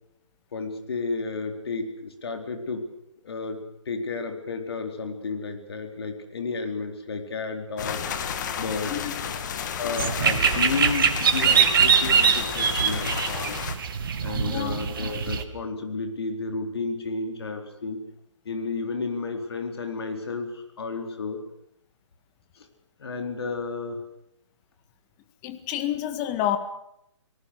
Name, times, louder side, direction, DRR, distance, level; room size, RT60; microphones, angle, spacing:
voice 1, 0.5-2.9 3.2-8.0 8.6-9.0 9.8-13.6 14.2-18.0 18.4-21.4 22.6-22.7 23.0-24.0, left 4 dB, 55° left, 5 dB, 4.2 m, -32 dB
sound 1, 7.8-13.8, left 7 dB, 35° left, 2.3 m, -32 dB
sound 2, 10.0-15.4, right 7 dB, 45° right, 2.4 m, -23 dB
voice 2, 14.3-14.8 25.4-26.6, left 12 dB, 20° left, 10 dB, 1.8 m, -28 dB
29.5 x 19.0 x 6.6 m, 0.76 s
figure-of-eight pair, 140°, 16 cm